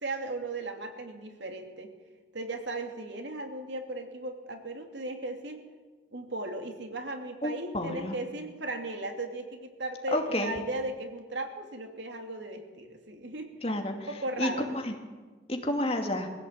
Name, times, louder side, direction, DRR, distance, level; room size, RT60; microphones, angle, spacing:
voice 1, 0.0-1.9 2.3-5.6 6.1-13.5 14.1-14.8, right 2 dB, 75° right, 4 dB, 2.8 m, -36 dB
voice 2, 7.4-8.2 10.1-10.5 13.6-14.1 14.4-14.5 14.8-14.9 15.5-16.3, left 1 dB, 30° left, 3 dB, 2.4 m, -30 dB
22.0 x 16.0 x 8.8 m, 1.3 s
head